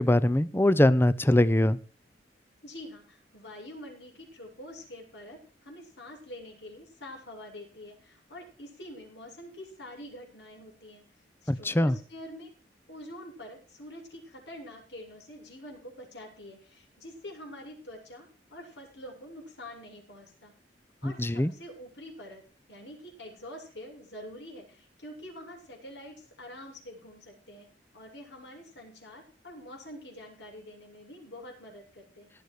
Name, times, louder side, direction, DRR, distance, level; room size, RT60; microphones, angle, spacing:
voice 1, 0.0-1.8 11.5-11.9 21.0-21.5, left 1 dB, 15° left, 17 dB, 0.7 m, -22 dB
voice 2, 2.6-11.0 11.4-12.5 12.9-20.5 21.0-22.4 22.7-27.7 27.9-32.3, left 1 dB, 80° left, 1 dB, 7.5 m, -46 dB
18.5 x 8.1 x 4.8 m, 0.43 s
head